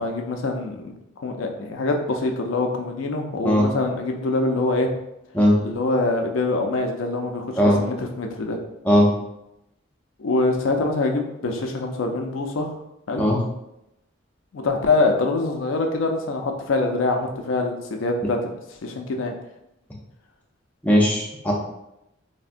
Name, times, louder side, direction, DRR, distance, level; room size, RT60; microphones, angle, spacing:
voice 1, 0.0-4.9 5.6-8.6 10.2-12.8 13.1-13.2 14.5-18.5 18.8-19.3, left 3 dB, 80° left, 3 dB, 0.4 m, -24 dB
voice 2, 20.8-21.5, equal, 5° left, -3 dB, 0.4 m, -18 dB
3.4 x 2.1 x 2.5 m, 0.85 s
head